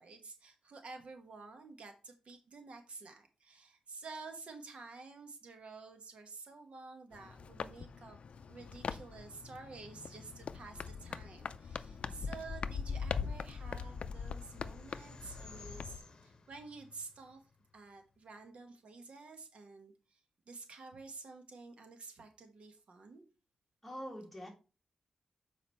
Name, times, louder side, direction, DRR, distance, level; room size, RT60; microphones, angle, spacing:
voice 1, 0.0-8.2 8.5-17.4 17.7-20.2 20.5-23.2, right 4 dB, 65° right, 6 dB, 1.2 m, -51 dB
sound 1, 7.1-16.0, left 6 dB, 65° left, 0.4 m, -42 dB
voice 2, 11.8-12.2 23.8-24.5, equal, 5° left, 0 dB, 1.9 m, -46 dB
sound 2, 12.8-18.2, left 3 dB, 40° left, 1.0 m, -58 dB
7.2 x 4.8 x 4.3 m, 0.33 s
wide cardioid pair, 180°, 2 cm